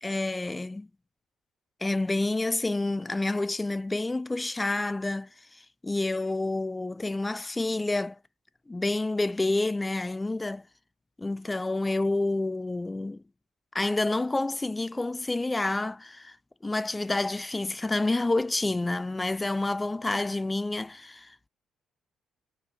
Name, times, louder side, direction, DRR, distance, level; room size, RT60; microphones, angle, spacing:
voice 1, 0.0-0.9 1.8-5.3 5.8-8.2 8.7-10.7 11.2-13.2 13.7-16.4 16.6-21.5, left 2 dB, 15° left, 0.3 m, -28 dB
3.4 x 2.7 x 4.2 m
figure-of-eight pair, 45°, 0 cm